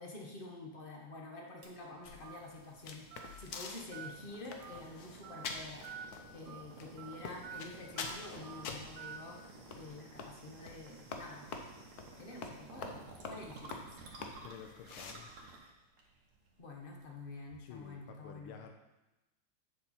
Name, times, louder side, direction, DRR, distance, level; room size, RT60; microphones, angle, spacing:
voice 1, 0.0-5.9 6.3-9.4 9.7-11.5 12.2-13.0 13.3-13.9 16.6-18.6, left 2 dB, 30° left, 0 dB, 1.1 m, -48 dB
sound 1, 1.6-17.9, right 3 dB, 55° right, 1.6 m, -55 dB
sound 2, 2.0-15.1, left 4 dB, 60° left, 1.0 m, -48 dB
Telephone, 2.2-2.4 3.1-3.3 3.9-4.1 4.6-4.8 5.2-5.4 5.8-6.1 6.5-6.6 7.0-7.1 7.4-7.6 8.0-8.1 8.4-8.6 9.0-9.2, right 8 dB, 85° right, 1.6 m, -47 dB
voice 2, 14.4-15.3 17.6-18.7, left 8 dB, 90° left, 4 dB, 1.6 m, -51 dB
7.5 x 7.1 x 4.3 m, 1.0 s
omnidirectional pair, 2.3 m